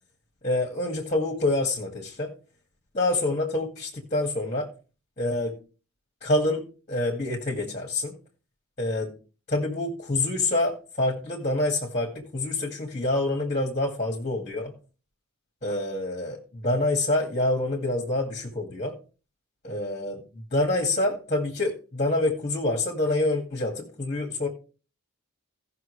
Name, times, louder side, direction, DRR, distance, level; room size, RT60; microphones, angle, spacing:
voice 1, 0.4-2.3 2.9-4.7 5.2-5.5 6.2-6.6 6.9-8.1 8.8-9.1 9.5-14.7 15.6-18.9 19.6-24.5, left 2 dB, 30° left, 1 dB, 1.9 m, -27 dB
17.0 x 6.0 x 3.2 m, 0.35 s
head